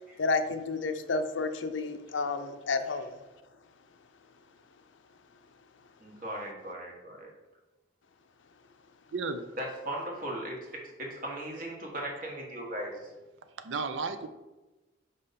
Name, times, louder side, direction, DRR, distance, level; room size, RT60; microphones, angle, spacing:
voice 1, 0.2-3.2, left 3 dB, 85° left, 8 dB, 0.6 m, -31 dB
voice 2, 6.0-7.3 9.6-13.1, right 1 dB, 45° right, -1 dB, 1.5 m, -38 dB
voice 3, 9.1-9.4 13.6-14.3, right 4 dB, 85° right, 9 dB, 0.5 m, -33 dB
5.4 x 5.4 x 4.2 m, 1.1 s
head